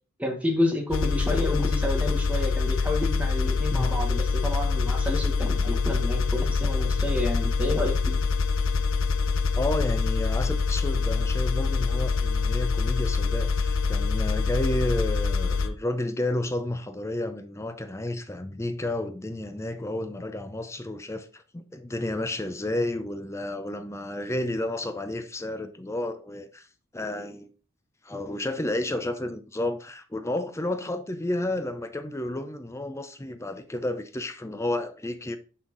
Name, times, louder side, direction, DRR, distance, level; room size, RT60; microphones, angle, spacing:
voice 1, 0.2-8.2, left 1 dB, 5° right, 1.3 m, -29 dB
sound 1, 0.9-15.7, left 4 dB, 65° left, 0.6 m, -25 dB
voice 2, 9.6-26.7 26.9-27.5 28.0-35.4, left 1 dB, 15° left, 0.6 m, -31 dB
6.1 x 5.7 x 3.9 m
head